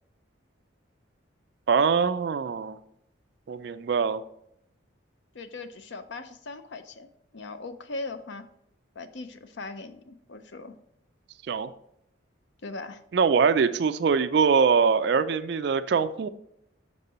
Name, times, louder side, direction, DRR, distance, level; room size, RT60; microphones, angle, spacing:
voice 1, 1.7-2.8 3.5-4.2 11.5-11.7 13.1-16.3, right 5 dB, 55° right, 11 dB, 0.3 m, -23 dB
voice 2, 5.3-7.1 7.3-8.5 9.0-10.7 12.6-13.0, left 3 dB, 65° left, 10 dB, 0.6 m, -39 dB
6.6 x 5.4 x 4.2 m, 0.76 s
head